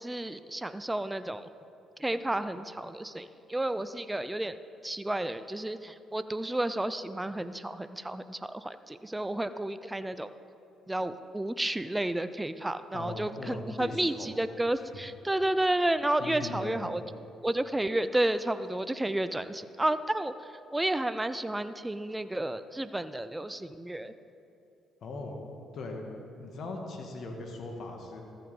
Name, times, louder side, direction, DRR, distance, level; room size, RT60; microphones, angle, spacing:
voice 1, 0.0-1.5 2.0-4.6 4.8-10.3 10.9-17.0 17.4-20.3 20.7-24.1, right 1 dB, 15° right, 12 dB, 0.4 m, -31 dB
voice 2, 12.9-14.3 14.8-14.9 16.2-16.9 25.0-25.4 25.7-26.1 26.4-28.2, left 2 dB, 60° left, 2 dB, 1.6 m, -39 dB
14.0 x 5.7 x 5.4 m, 2.6 s
hypercardioid pair, 55°, 0 cm